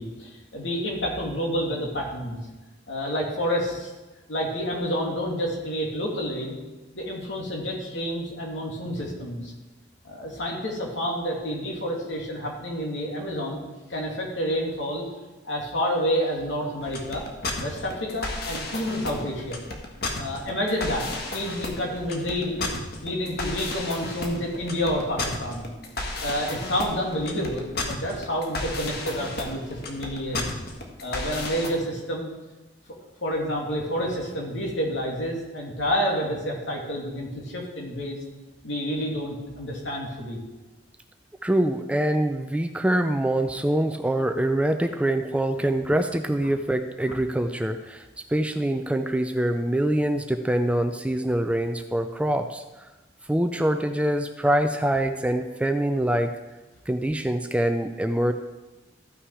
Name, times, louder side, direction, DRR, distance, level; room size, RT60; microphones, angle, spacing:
voice 1, 0.0-2.4 2.9-3.9 4.3-6.6 6.9-9.5 10.0-13.6 13.9-15.0 15.4-17.2 17.6-19.6 20.2-22.7 23.0-25.7 26.2-30.5 31.0-32.3 33.2-38.2 38.6-40.4, equal, 75° left, -1 dB, 2.6 m, -29 dB
sound 1, 16.8-31.7, left 2 dB, 55° left, 1.5 m, -33 dB
voice 2, 41.4-52.6 53.3-56.4 56.9-58.3, right 1 dB, 5° right, 7 dB, 0.4 m, -24 dB
14.5 x 6.0 x 4.8 m, 1.1 s
head